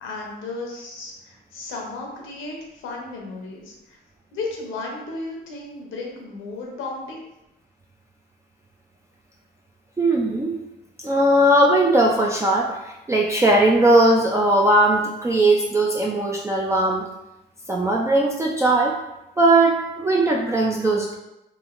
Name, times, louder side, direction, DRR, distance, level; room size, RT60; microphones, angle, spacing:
voice 1, 0.0-4.0 4.3-7.2, left 3 dB, 85° left, -1 dB, 0.8 m, -34 dB
voice 2, 10.0-10.6 11.0-17.1 17.7-19.0 19.4-21.1, right 1 dB, 15° right, -2 dB, 0.3 m, -19 dB
3.0 x 2.5 x 2.4 m, 0.92 s
cardioid pair, 90°, 20 cm